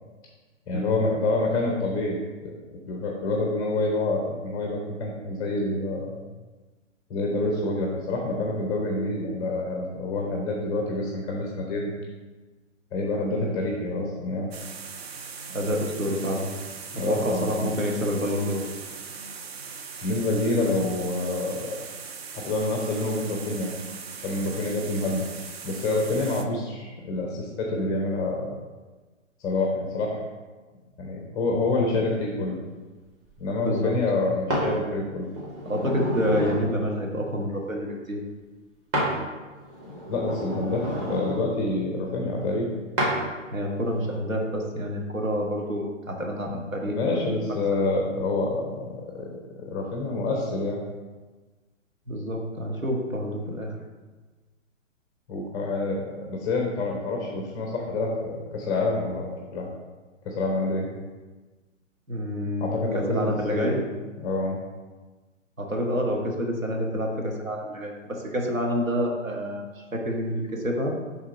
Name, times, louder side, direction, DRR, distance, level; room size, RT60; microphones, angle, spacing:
voice 1, 0.7-6.2 7.1-11.9 12.9-14.5 16.9-17.7 20.0-21.7 22.3-23.7 24.2-25.3 25.6-28.5 29.4-30.2 31.0-32.6 33.4-35.3 40.1-42.7 46.5-46.6 46.9-49.3 49.6-50.8 55.3-59.7 60.2-60.9 62.6-63.8 64.2-64.6, left 2 dB, 10° left, 0 dB, 0.5 m, -27 dB
sound 1, 14.5-26.4, right 5 dB, 50° right, 0.7 m, -40 dB
voice 2, 15.5-16.5 17.1-18.7 33.6-33.9 35.6-38.2 43.5-47.6 52.1-53.7 62.1-63.8 65.6-71.0, equal, 90° right, 0 dB, 1.5 m, -28 dB
sound 2, 34.5-34.7 35.3-36.7 38.9-39.1 39.6-41.4 43.0-43.2 43.9-44.1, equal, 30° right, 2.2 m, -29 dB
7.3 x 3.5 x 5.0 m, 1.3 s
figure-of-eight pair, 125°, 39 cm